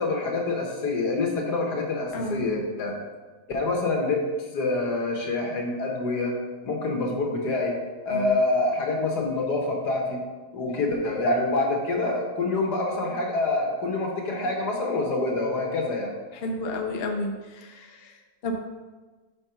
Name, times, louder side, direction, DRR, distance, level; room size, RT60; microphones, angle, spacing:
voice 1, 0.0-3.0 3.5-4.2 4.5-6.3 6.6-7.7 8.1-10.2 10.5-16.1, left 2 dB, 80° left, 1 dB, 1.8 m, -26 dB
voice 2, 2.1-2.5 8.1-8.4 16.3-18.5, left 2 dB, 50° left, 3 dB, 0.9 m, -32 dB
5.5 x 5.3 x 5.7 m, 1.3 s
omnidirectional pair, 1.7 m